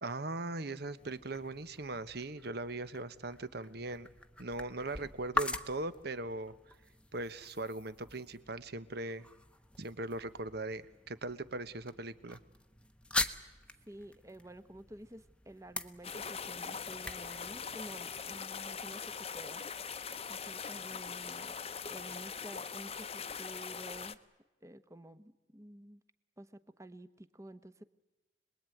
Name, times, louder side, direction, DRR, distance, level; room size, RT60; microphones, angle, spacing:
voice 1, 0.0-4.1 4.4-6.7 7.1-9.3 9.8-12.4, right 2 dB, 60° right, 13 dB, 1.2 m, -39 dB
sound 1, 0.7-18.5, left 2 dB, 5° left, 1.0 m, -43 dB
voice 2, 13.9-19.6 20.3-21.6 21.9-24.2 24.6-26.0 26.4-27.8, right 1 dB, 15° right, 12 dB, 1.0 m, -51 dB
sound 2, 16.0-24.1, left 6 dB, 35° left, 0.9 m, -42 dB
26.5 x 21.0 x 9.2 m, 1.1 s
head